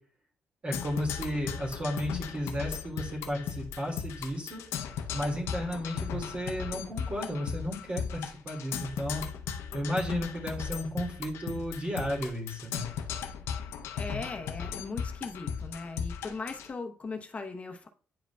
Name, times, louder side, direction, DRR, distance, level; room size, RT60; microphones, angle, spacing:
voice 1, 0.6-4.6 5.1-9.2 9.7-12.9, equal, 30° right, -1 dB, 2.0 m, -33 dB
Percussion, 0.7-16.7, left 7 dB, 85° left, 0.6 m, -37 dB
voice 2, 14.0-17.9, left 3 dB, 30° left, 5 dB, 0.8 m, -39 dB
9.3 x 4.9 x 2.2 m, 0.42 s
cardioid pair, 110°, 4 cm